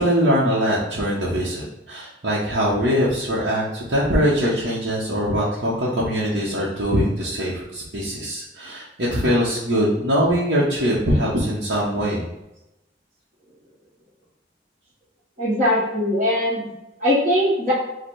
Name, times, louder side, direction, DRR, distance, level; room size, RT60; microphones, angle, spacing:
voice 1, 0.0-12.2, equal, 65° right, -8 dB, 0.9 m, -22 dB
voice 2, 15.4-16.6 17.0-17.7, left 1 dB, 45° right, -6 dB, 1.2 m, -20 dB
4.8 x 2.2 x 4.6 m, 0.93 s
head